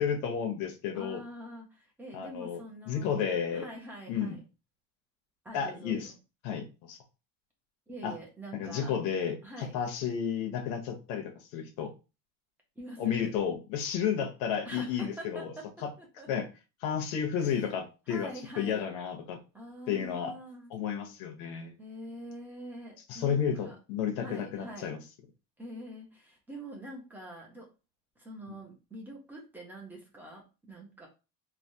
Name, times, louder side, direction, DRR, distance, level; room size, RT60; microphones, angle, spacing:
voice 1, 0.0-1.2 2.1-2.6 2.9-3.7 4.1-4.4 5.5-6.1 6.4-7.0 8.0-8.2 8.5-11.9 13.0-15.5 15.8-15.9 16.3-16.5 16.8-18.3 18.6-19.4 19.9-20.3 20.7-21.7 23.1-25.0, left 7 dB, 65° left, 3 dB, 0.8 m, -32 dB
voice 2, 0.9-3.2 3.5-4.4 5.4-6.2 7.9-8.9 9.4-9.7 12.8-13.3 14.6-15.7 16.0-16.3 17.4-17.5 18.1-18.8 19.5-20.7 21.8-23.8 24.2-24.9 25.6-27.7 28.2-31.1, right 1 dB, 5° right, -1 dB, 0.6 m, -45 dB
3.3 x 2.2 x 2.6 m, 0.30 s
cardioid pair, 170°, 33 cm